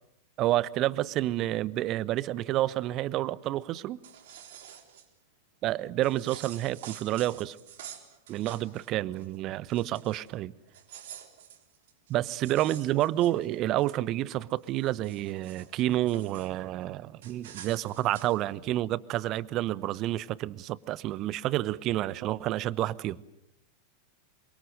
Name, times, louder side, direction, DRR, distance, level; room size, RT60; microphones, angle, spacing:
voice 1, 0.4-4.0 5.6-7.6 8.3-10.5 12.1-23.2, right 14 dB, 35° right, 0.9 m, -29 dB
sound 1, 3.9-5.1 6.0-8.9 9.2-9.4 9.7-10.3 10.7-14.0 14.5-16.5 17.2-18.4, right 9 dB, 55° right, 3.8 m, -48 dB
27.5 x 24.0 x 7.8 m
figure-of-eight pair, 90°, 0 cm